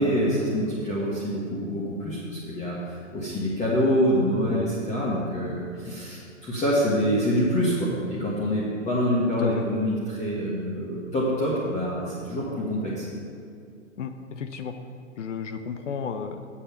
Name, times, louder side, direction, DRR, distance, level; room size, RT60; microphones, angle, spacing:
voice 1, 0.0-13.1, equal, 20° left, -6 dB, 1.5 m, -26 dB
voice 2, 14.0-14.7 15.2-16.5, left 6 dB, 70° left, 8 dB, 0.8 m, -33 dB
8.7 x 7.3 x 5.8 m, 2.2 s
hypercardioid pair, 135°, 38 cm